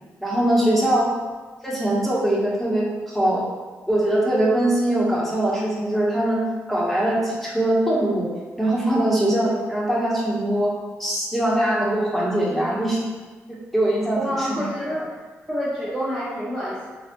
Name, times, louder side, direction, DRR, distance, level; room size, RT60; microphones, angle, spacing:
voice 1, 0.2-1.1 1.6-3.5 3.9-6.4 6.7-8.3 8.6-10.7 11.0-13.0 13.5-14.6, right 1 dB, 5° left, -6 dB, 1.2 m, -22 dB
voice 2, 14.2-15.0 15.5-16.9, equal, 15° right, -9 dB, 0.9 m, -27 dB
4.1 x 2.4 x 2.6 m, 1.3 s
supercardioid pair, 45°, 6 cm